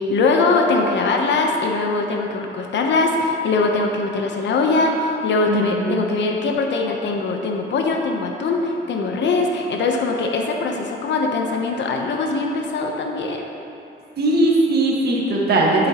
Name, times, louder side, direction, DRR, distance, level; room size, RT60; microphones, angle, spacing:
voice 1, 0.0-13.4, left 3 dB, 65° left, 2 dB, 0.9 m, -21 dB
voice 2, 5.5-6.0 14.2-15.9, right 2 dB, 55° right, -3 dB, 1.7 m, -19 dB
11.0 x 7.1 x 3.0 m, 2.7 s
cardioid pair, 90°, 20 cm